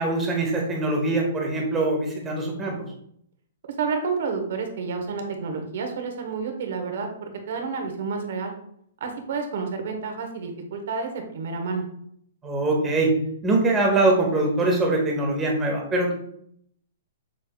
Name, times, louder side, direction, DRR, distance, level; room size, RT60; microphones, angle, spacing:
voice 1, 0.0-2.8 12.4-13.1 13.4-16.1, right 2 dB, 10° right, -1 dB, 1.0 m, -23 dB
voice 2, 3.8-8.5 9.0-11.9, right 5 dB, 60° right, 4 dB, 1.0 m, -30 dB
6.3 x 3.3 x 2.3 m, 0.67 s
hypercardioid pair, 165°, 0 cm